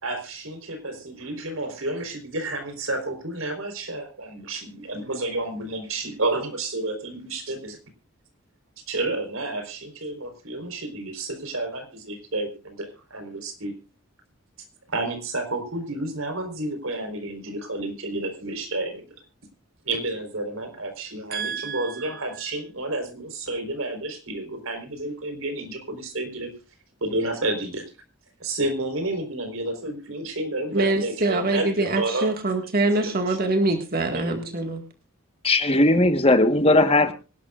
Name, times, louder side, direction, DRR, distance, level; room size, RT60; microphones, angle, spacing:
voice 1, 0.0-7.8 8.9-13.7 14.9-19.0 19.8-26.5 27.0-27.8 28.4-32.3 33.0-33.4 34.1-34.5, right 2 dB, 75° right, 4.3 m, -30 dB
voice 2, 21.3-22.2 30.7-34.8, right 2 dB, 45° right, 1.9 m, -25 dB
voice 3, 35.4-37.1, left 2 dB, 30° left, 1.4 m, -18 dB
25.0 x 12.0 x 2.5 m
head